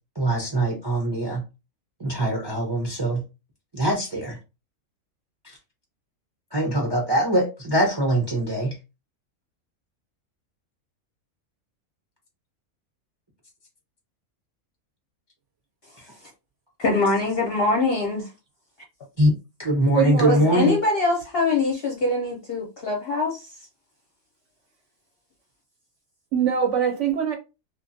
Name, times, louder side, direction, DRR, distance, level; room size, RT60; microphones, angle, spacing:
voice 1, 0.2-1.4 2.0-3.2 3.7-4.4 6.5-8.8 19.2-19.3 19.6-20.8, right 1 dB, 35° right, 0.4 m, -22 dB
voice 2, 16.8-18.3 20.3-23.5, left 3 dB, 55° left, 0.7 m, -23 dB
voice 3, 19.9-20.6 26.3-27.3, right 7 dB, 65° right, 0.8 m, -23 dB
2.9 x 2.2 x 2.6 m
omnidirectional pair, 1.5 m